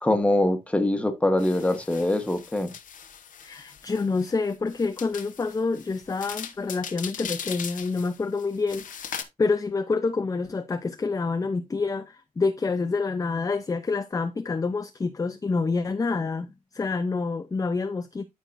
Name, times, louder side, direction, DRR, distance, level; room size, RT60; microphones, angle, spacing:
voice 1, 0.0-2.7, left 1 dB, 10° left, 1.2 m, -23 dB
sound 1, 1.4-9.2, left 7 dB, 90° left, 1.0 m, -40 dB
voice 2, 3.4-18.3, left 4 dB, 25° left, 0.5 m, -27 dB
13.5 x 4.7 x 2.5 m
wide cardioid pair, 130°, 13 cm